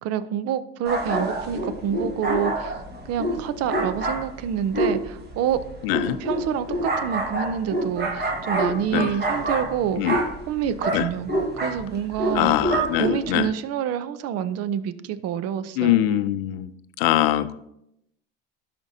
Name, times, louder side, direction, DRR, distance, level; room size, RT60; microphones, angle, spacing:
voice 1, 0.0-2.7 3.1-5.6 6.1-10.2 10.5-12.7 13.0-16.0, right 9 dB, 55° right, 14 dB, 0.7 m, -27 dB
sound 1, 0.9-13.5, right 1 dB, 35° right, 1.7 m, -27 dB
voice 2, 5.8-6.2 8.9-9.1 10.0-10.2 10.9-11.1 12.3-13.5 15.8-16.7 17.0-17.5, left 13 dB, 80° left, 13 dB, 0.6 m, -22 dB
12.0 x 5.1 x 2.7 m, 0.78 s
supercardioid pair, 90°, 29 cm